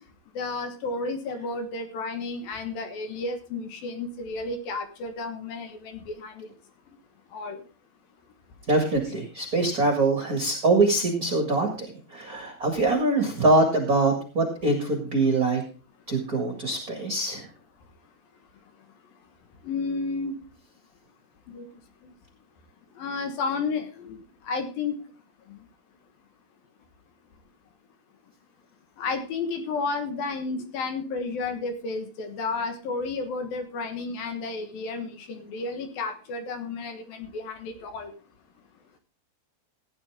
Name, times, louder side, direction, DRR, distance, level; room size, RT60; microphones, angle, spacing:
voice 1, 0.4-6.5 7.3-7.6 19.6-20.4 21.5-21.7 23.0-24.2 24.4-25.0 25.5-25.6 29.0-38.1, left 3 dB, 65° left, 7 dB, 2.9 m, -32 dB
voice 2, 8.7-15.6 16.1-17.5, right 2 dB, 40° right, 3 dB, 1.3 m, -23 dB
16.0 x 9.9 x 3.6 m, 0.35 s
omnidirectional pair, 4.8 m